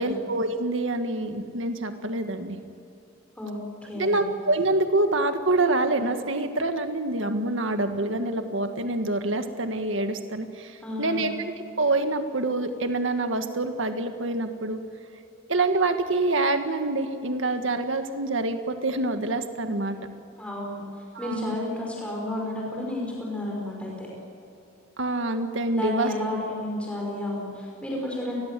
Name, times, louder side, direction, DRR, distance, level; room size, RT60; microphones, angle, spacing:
voice 1, 0.0-2.6 3.9-11.3 11.8-14.8 15.5-20.0 21.2-21.5 25.0-26.1, right 2 dB, 65° right, 7 dB, 1.8 m, -26 dB
voice 2, 3.8-4.3 10.8-11.3 20.4-20.8 21.2-24.1 25.8-28.4, left 1 dB, 5° left, -3 dB, 5.4 m, -31 dB
29.0 x 21.0 x 7.6 m, 2.6 s
head